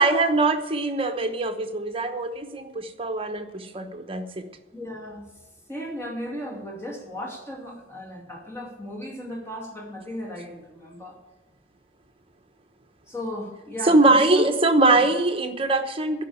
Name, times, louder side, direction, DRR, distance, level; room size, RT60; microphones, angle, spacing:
voice 1, 0.0-4.4 13.9-16.2, right 2 dB, 30° right, 6 dB, 1.0 m, -22 dB
voice 2, 4.7-5.3 5.7-11.2 13.1-14.5, equal, 15° left, -1 dB, 2.5 m, -35 dB
12.0 x 5.6 x 8.6 m, 1.1 s
head